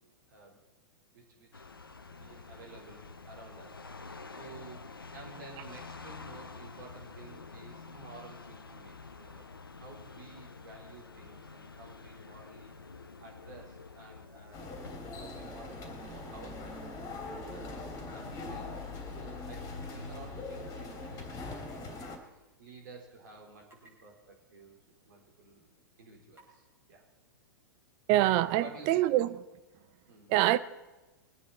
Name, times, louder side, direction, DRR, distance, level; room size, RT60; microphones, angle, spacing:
voice 1, 0.3-0.6 1.1-1.7 2.0-4.9 5.1-12.7 13.0-14.8 15.2-16.8 17.5-18.7 19.1-24.8 25.1-25.7 26.0-27.0 28.6-29.2 30.1-30.3, right 3 dB, 55° right, 4.3 m, -53 dB
sound 1, 1.5-21.3, left 4 dB, 85° left, 0.9 m, -48 dB
sound 2, 14.5-22.2, left 2 dB, 30° left, 2.9 m, -42 dB
sound 3, 21.0-21.3 21.6-21.7 23.6-23.9 24.5-24.6 25.3-25.4 26.3-26.6, right 1 dB, 20° right, 5.6 m, -60 dB
voice 2, 28.1-29.3 30.3-30.6, right 15 dB, 40° right, 0.7 m, -25 dB
22.0 x 9.5 x 4.3 m
figure-of-eight pair, 100°, 12 cm